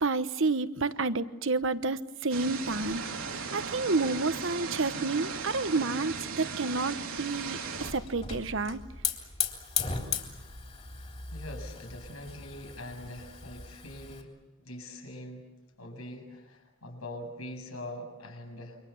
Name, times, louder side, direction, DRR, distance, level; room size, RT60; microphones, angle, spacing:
voice 1, 0.0-3.0 3.3-8.8, right 3 dB, 65° right, 11 dB, 1.1 m, -30 dB
sound 1, 2.3-7.9, right 5 dB, 85° right, 3.2 m, -37 dB
Hiss / Fire, 7.4-14.2, left 6 dB, 30° left, 3.5 m, -37 dB
voice 2, 11.3-14.3 14.6-15.5 15.8-18.8, left 1 dB, 90° left, 3 dB, 7.5 m, -43 dB
28.5 x 24.5 x 7.2 m, 1.0 s
head